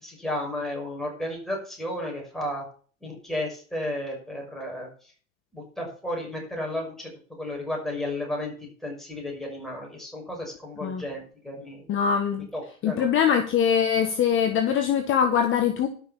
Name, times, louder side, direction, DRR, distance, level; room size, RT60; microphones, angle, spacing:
voice 1, 0.0-2.6 3.0-4.9 5.5-7.1 7.4-8.5 8.8-11.8 12.5-13.1, left 1 dB, ahead, -1 dB, 6.2 m, -33 dB
voice 2, 11.9-12.5 12.8-15.9, left 8 dB, 30° left, 5 dB, 1.6 m, -23 dB
12.0 x 6.5 x 7.1 m, 0.42 s
hypercardioid pair, 110°, 42 cm